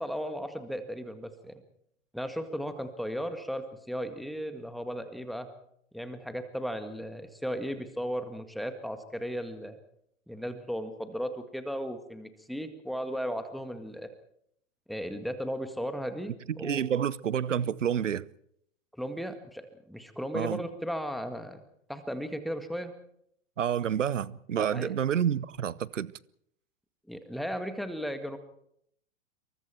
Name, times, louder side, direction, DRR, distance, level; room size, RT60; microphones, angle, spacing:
voice 1, 0.0-1.6 2.1-5.5 5.9-9.8 10.3-14.1 14.9-16.8 19.0-19.6 19.9-21.6 21.9-22.9 24.6-24.9 27.1-28.4, equal, ahead, 1.9 m, -35 dB
voice 2, 16.6-18.3 20.3-20.6 23.6-26.1, right 9 dB, 70° right, 0.9 m, -29 dB
28.0 x 23.5 x 4.5 m
figure-of-eight pair, 105°, 39 cm